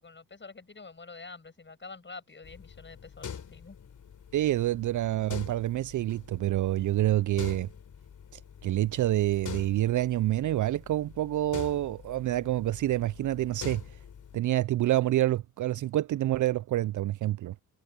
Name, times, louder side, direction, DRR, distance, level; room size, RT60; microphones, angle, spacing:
voice 1, 0.0-3.8, left 4 dB, 30° left, 6.2 m, -47 dB
sound 1, 2.4-14.4, left 7 dB, 55° left, 3.7 m, -45 dB
voice 2, 4.3-7.7 8.6-13.8 14.3-17.5, right 14 dB, 55° right, 0.5 m, -27 dB
supercardioid pair, 60°, 37 cm